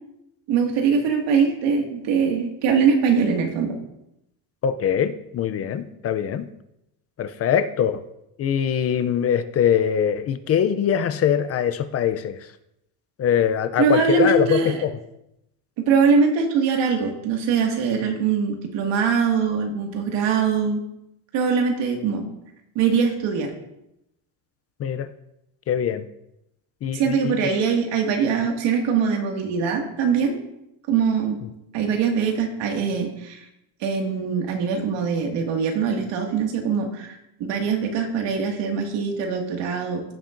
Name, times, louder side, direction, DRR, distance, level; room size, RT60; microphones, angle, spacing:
voice 1, 0.5-3.8 13.8-14.8 15.9-20.8 21.3-22.3 22.8-23.5 26.9-30.4 30.9-31.4 31.7-33.4 33.8-40.0, right 6 dB, 65° right, 2 dB, 2.0 m, -22 dB
voice 2, 4.6-6.5 7.2-8.0 8.4-12.4 13.2-14.9 24.8-25.1 25.7-26.0 26.8-27.4, left 8 dB, 35° left, 12 dB, 0.4 m, -22 dB
16.5 x 7.3 x 2.6 m, 0.84 s
cardioid pair, 145°, 46 cm